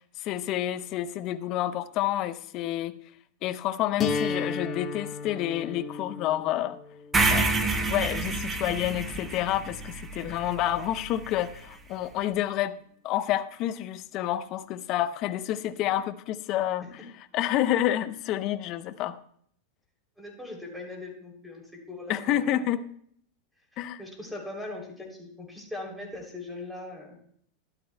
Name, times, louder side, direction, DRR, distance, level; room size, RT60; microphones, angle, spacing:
voice 1, 0.2-3.0 3.4-6.8 7.3-7.5 7.9-12.8 13.0-17.1 17.3-19.2 22.1-22.8 23.8-24.0, left 12 dB, 45° left, 0.7 m, -29 dB
sound 1, 4.0-10.0, left 5 dB, 30° left, 1.4 m, -35 dB
sound 2, 7.1-11.3, right 3 dB, 20° right, 0.9 m, -28 dB
voice 2, 20.2-21.6 21.9-22.6 23.7-27.2, left 2 dB, ahead, 3.1 m, -40 dB
12.5 x 12.0 x 2.2 m
hypercardioid pair, 120°, 0 cm